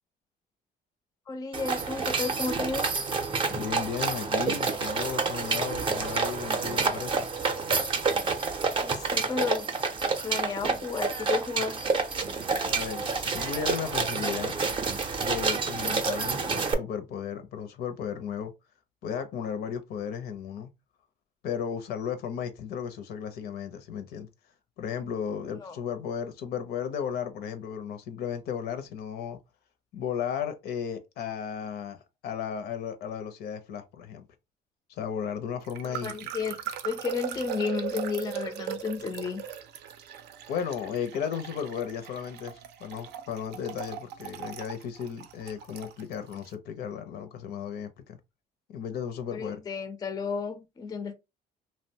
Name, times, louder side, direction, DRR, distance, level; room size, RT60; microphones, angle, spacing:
voice 1, 1.3-2.9 8.8-9.7 10.2-11.8 25.6-25.7 35.8-36.6 36.8-39.4 49.3-51.1, left 5 dB, 20° left, 0.4 m, -32 dB
sound 1, 1.5-16.7, right 4 dB, 30° right, 0.5 m, -28 dB
voice 2, 3.5-7.3 12.6-14.6 15.2-18.5 19.0-20.7 21.4-24.3 24.8-29.4 29.9-34.2 34.9-36.1 40.5-48.2 48.7-49.6, left 7 dB, 70° left, 0.6 m, -35 dB
sound 2, 35.6-46.5, right 9 dB, 80° right, 0.5 m, -39 dB
2.8 x 2.1 x 2.7 m
cardioid pair, 110°, 17 cm